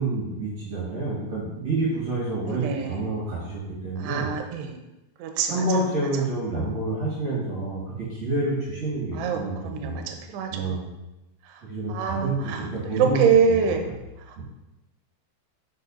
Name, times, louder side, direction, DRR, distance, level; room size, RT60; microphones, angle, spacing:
voice 1, 0.0-4.3 5.5-9.5 9.8-10.1 10.5-10.9 11.6-13.2 13.5-13.6 14.4-14.5, right 2 dB, 50° right, -6 dB, 2.2 m, -28 dB
voice 2, 2.5-3.1 4.0-4.8 5.2-5.6 6.6-6.8 9.1-10.8 11.5-11.6 11.9-13.8 14.3-14.4, right 6 dB, 80° right, 4 dB, 2.8 m, -25 dB
9.7 x 5.5 x 2.7 m, 0.97 s
omnidirectional pair, 5.0 m